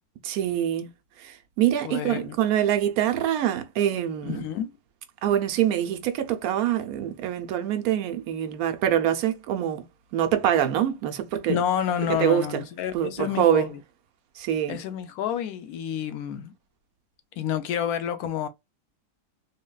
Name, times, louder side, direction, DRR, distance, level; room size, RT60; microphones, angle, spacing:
voice 1, 0.2-0.9 1.2-4.4 5.2-9.8 10.1-11.6 12.2-12.6 12.9-13.7 14.4-14.8, right 10 dB, 80° right, 1.1 m, -25 dB
voice 2, 1.8-2.4 4.2-4.7 11.5-13.8 14.7-16.5 17.4-18.5, left 9 dB, 80° left, 1.0 m, -29 dB
3.8 x 2.1 x 2.2 m
omnidirectional pair, 1.6 m